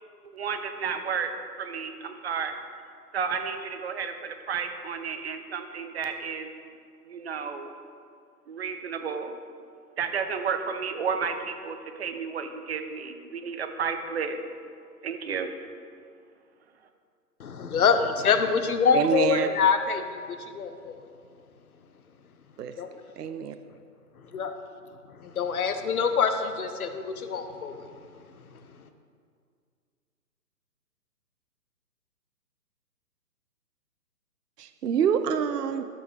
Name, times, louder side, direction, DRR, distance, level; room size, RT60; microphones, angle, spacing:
voice 1, 0.3-1.3 1.6-2.5 3.1-6.5 7.0-7.7 8.5-9.3 10.0-14.4 15.0-15.5, right 6 dB, 40° right, 7 dB, 0.8 m, -32 dB
voice 2, 17.4-21.1 22.8-23.0 24.2-24.5 25.1-27.9 28.3-28.4, left 6 dB, 60° left, 8 dB, 1.0 m, -26 dB
voice 3, 18.9-19.5 22.6-22.7 23.2-23.6 34.6-35.8, right 7 dB, 70° right, 9 dB, 0.7 m, -26 dB
12.5 x 7.1 x 3.6 m, 2.2 s
figure-of-eight pair, 140°, 49 cm